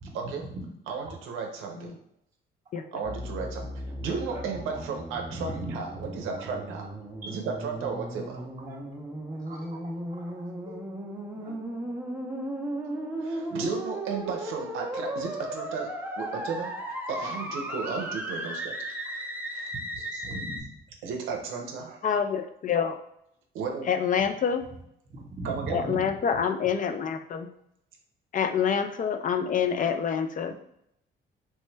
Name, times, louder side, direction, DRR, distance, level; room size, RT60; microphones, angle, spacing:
voice 1, 0.1-0.5 0.9-2.0 2.9-7.0 7.3-8.4 13.2-16.8 17.1-18.8 19.1-19.7 20.0-20.1 21.0-22.0 23.5-23.9 25.4-25.8, right 5 dB, 90° right, 2 dB, 0.5 m, -34 dB
sound 1, 3.0-20.6, right 1 dB, 10° right, 0.5 m, -36 dB
voice 2, 5.6-6.0 8.7-8.8 9.5-9.6 10.2-10.7 11.4-11.5 17.9-18.0 20.1-20.6 25.1-26.0, right 2 dB, 40° right, -4 dB, 0.8 m, -39 dB
voice 3, 22.0-23.0 23.9-24.6 25.7-27.5 28.3-30.5, left 7 dB, 40° left, 7 dB, 0.4 m, -27 dB
3.1 x 2.1 x 3.2 m, 0.74 s
cardioid pair, 90°, 20 cm